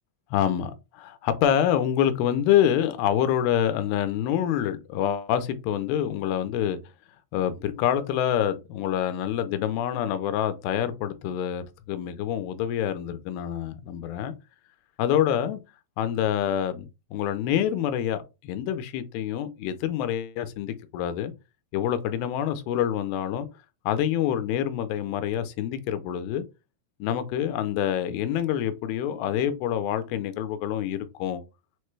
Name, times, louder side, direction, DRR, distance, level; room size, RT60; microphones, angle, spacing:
voice 1, 0.3-6.8 7.3-14.3 15.0-15.6 16.0-21.3 21.7-23.5 23.9-26.4 27.0-31.4, left 10 dB, 80° left, 2.3 m, -26 dB
6.5 x 2.2 x 3.1 m
omnidirectional pair, 4.5 m